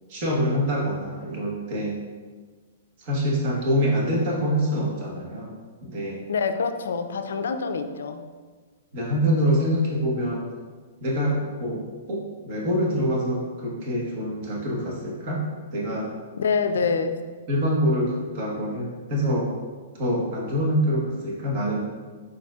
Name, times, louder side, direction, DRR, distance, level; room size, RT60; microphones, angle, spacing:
voice 1, 0.1-2.0 3.0-5.5 5.8-6.2 8.9-10.4 11.0-15.4 15.7-16.1 16.9-17.0 17.5-19.5 20.0-21.8, equal, 35° right, -3 dB, 1.1 m, -25 dB
voice 2, 6.3-8.2 16.4-17.2, left 5 dB, 90° left, 8 dB, 0.4 m, -26 dB
4.9 x 4.3 x 2.4 m, 1.4 s
hypercardioid pair, 165°, 0 cm